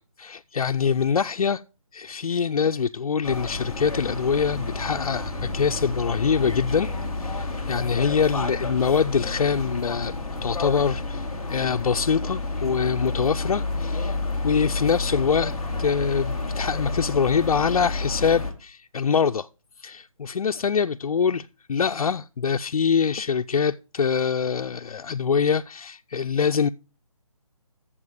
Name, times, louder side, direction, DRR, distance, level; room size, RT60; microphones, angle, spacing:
voice 1, 0.0-1.6 1.9-6.9 7.2-10.1 10.4-14.2 14.4-15.5 15.8-19.5 19.8-21.4 21.7-26.7, left 6 dB, 90° left, 0.5 m, -24 dB
sound 1, 3.2-18.5, left 3 dB, ahead, 0.7 m, -30 dB
8.4 x 7.3 x 4.8 m
hypercardioid pair, 175°, 18 cm